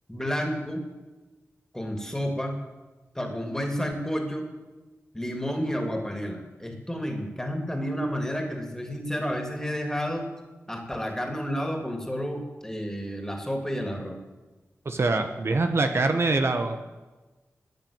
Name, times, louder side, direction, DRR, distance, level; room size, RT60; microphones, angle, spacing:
voice 1, 0.1-0.8 1.7-2.5 3.1-4.5 5.1-10.3 10.7-14.2, equal, 10° left, 4 dB, 3.0 m, -30 dB
voice 2, 14.8-16.8, right 3 dB, 55° right, 6 dB, 1.2 m, -24 dB
13.5 x 9.3 x 8.9 m, 1.2 s
wide cardioid pair, 65°, 5 cm